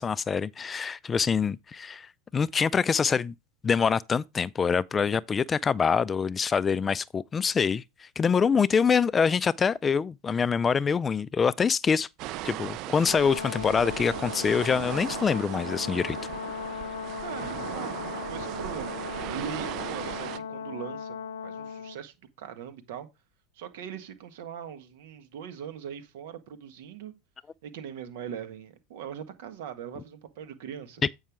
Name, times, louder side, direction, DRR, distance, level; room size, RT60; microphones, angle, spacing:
voice 1, 0.0-2.1 2.3-3.3 3.6-12.1 12.4-16.2 31.0-31.1, left 6 dB, 25° left, 0.4 m, -25 dB
sound 1, 12.2-20.4, right 15 dB, 55° right, 0.4 m, -37 dB
Brass instrument, 13.0-22.0, left 7 dB, 85° left, 0.5 m, -37 dB
voice 2, 17.2-21.2 21.4-23.1 23.5-27.1 27.6-31.0, right 8 dB, 70° right, 1.5 m, -41 dB
8.7 x 5.5 x 3.5 m
hypercardioid pair, 95°, 0 cm